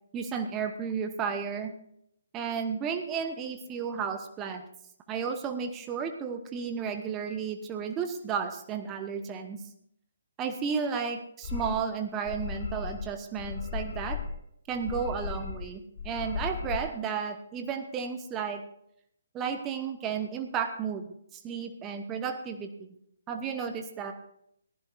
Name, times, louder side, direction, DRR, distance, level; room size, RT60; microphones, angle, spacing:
voice 1, 0.1-1.7 2.3-4.6 5.1-9.6 10.4-14.2 14.7-18.6 19.3-21.0 21.3-22.9 23.3-24.1, right 6 dB, 15° right, 6 dB, 1.0 m, -33 dB
sound 1, 11.4-11.8 12.2-13.1 13.3-14.4 14.7-15.7 16.0-16.8, left 5 dB, 40° left, 5.1 m, -36 dB
22.0 x 15.0 x 2.5 m, 0.73 s
figure-of-eight pair, 135°, 0 cm